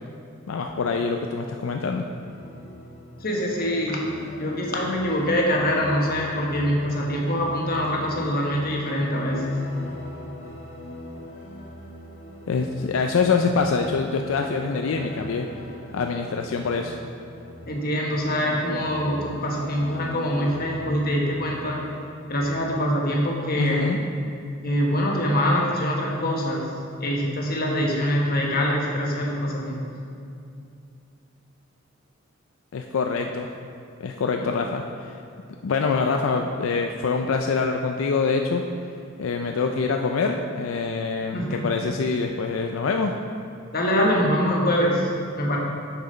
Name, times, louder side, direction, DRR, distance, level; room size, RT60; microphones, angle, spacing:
voice 1, 0.5-2.0 12.5-15.5 15.9-17.0 23.6-24.0 32.7-33.5 34.0-34.8 35.6-38.6 39.2-43.1, left 4 dB, 80° left, 4 dB, 0.4 m, -25 dB
sound 1, 2.3-22.0, left 1 dB, 65° left, 1.2 m, -41 dB
voice 2, 3.2-4.0 4.4-9.6 17.7-21.8 22.3-23.8 24.6-26.7 27.0-29.9 34.4-34.5 41.3-41.7 43.7-45.6, equal, 50° left, -2 dB, 1.3 m, -24 dB
6.7 x 6.1 x 5.2 m, 2.4 s
head